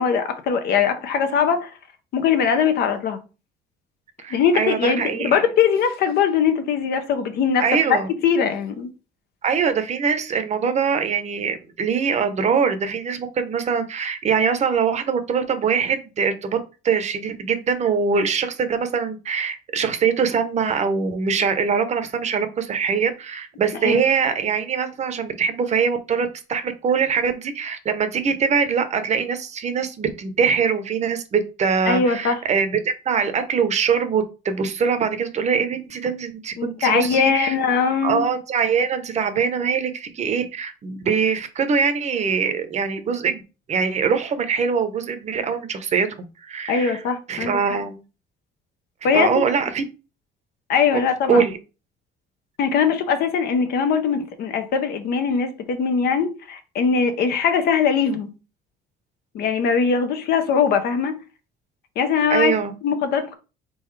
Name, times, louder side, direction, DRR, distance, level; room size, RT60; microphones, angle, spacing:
voice 1, 0.0-1.7 2.1-3.2 4.3-8.0 8.2-8.9 23.8-24.0 31.9-32.4 36.6-38.3 46.7-47.6 49.0-49.3 50.7-51.5 52.6-58.3 59.3-61.2 62.0-62.5 62.8-63.3, left 6 dB, 70° left, 0.8 m, -21 dB
voice 2, 4.2-5.4 7.6-8.1 9.4-16.6 16.8-37.6 38.0-43.4 43.7-46.1 46.4-47.0 47.3-48.0 49.1-49.8 51.3-51.6 62.3-62.7, right 6 dB, 45° right, 0.7 m, -23 dB
3.9 x 3.7 x 3.2 m
cardioid pair, 110°, 17 cm